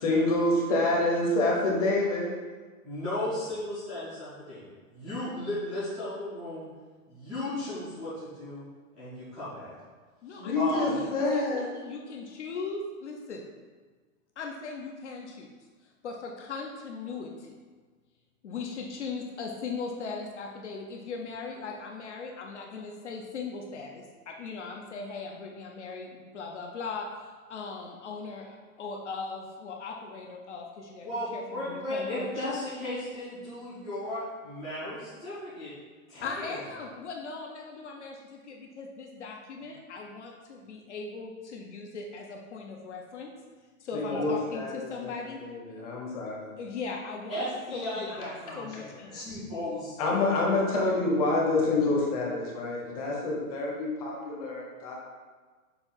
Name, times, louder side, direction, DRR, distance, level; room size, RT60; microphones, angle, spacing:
voice 1, 0.0-2.3 10.3-11.6 43.9-46.6 50.0-55.0, left 2 dB, 25° left, -2 dB, 1.0 m, -27 dB
voice 2, 2.8-6.7 7.1-8.6 8.9-9.7 10.5-10.9 31.0-35.7 36.1-36.6 44.1-44.2 47.3-49.9, left 1 dB, ahead, -17 dB, 0.5 m, -35 dB
voice 3, 10.2-13.4 14.4-15.5 16.0-17.6 18.4-32.4 36.2-43.3 43.8-45.5 46.6-47.4 47.7-48.2 48.6-49.3, left 4 dB, 50° left, 0 dB, 0.8 m, -39 dB
6.8 x 2.6 x 5.6 m, 1.4 s
hypercardioid pair, 170°, 43 cm